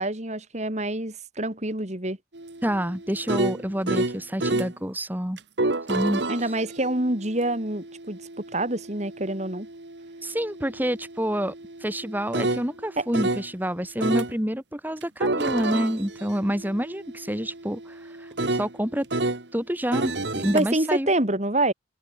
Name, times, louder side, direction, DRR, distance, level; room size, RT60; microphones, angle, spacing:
voice 1, 0.0-2.2 6.3-8.2 8.5-9.7 13.0-13.1 20.5-21.7, right 1 dB, 35° right, 3.4 m, -26 dB
sound 1, 2.3-4.7 5.4-13.5 14.0-14.3 15.0-19.4 19.9-20.6, right 2 dB, 65° right, 2.0 m, -30 dB
voice 2, 2.6-5.4 5.9-6.5 10.2-11.5 11.8-19.1 19.5-21.1, equal, 10° right, 2.9 m, -28 dB
head